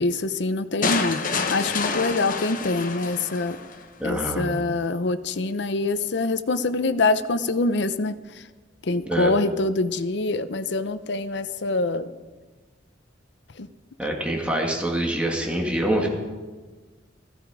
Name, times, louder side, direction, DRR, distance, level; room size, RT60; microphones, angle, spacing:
voice 1, 0.0-3.6 4.0-8.1 8.8-12.1 13.6-13.7, left 3 dB, 70° left, 12 dB, 0.8 m, -25 dB
sound 1, 0.8-3.8, left 4 dB, 50° left, 1.2 m, -28 dB
voice 2, 4.0-4.5 9.1-9.3 14.0-16.1, right 1 dB, 5° right, 0 dB, 2.1 m, -25 dB
15.5 x 15.0 x 4.9 m, 1.3 s
head